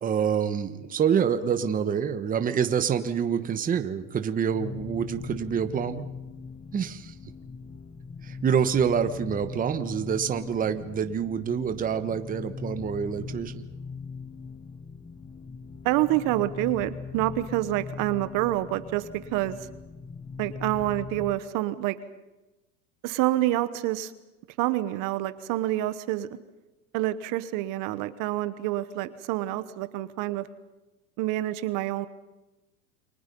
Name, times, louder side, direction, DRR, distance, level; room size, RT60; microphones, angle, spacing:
voice 1, 0.0-6.0 6.7-7.1 8.2-13.6, right 7 dB, 20° right, 9 dB, 1.2 m, -27 dB
sound 1, 4.4-21.4, left 5 dB, 10° left, 0.7 m, -40 dB
voice 2, 15.8-19.6 20.4-22.0 23.0-24.1 24.6-26.3 26.9-30.5 31.2-32.1, right 15 dB, 50° right, 13 dB, 1.2 m, -27 dB
29.0 x 24.5 x 5.4 m, 1.0 s
supercardioid pair, 135°, 41 cm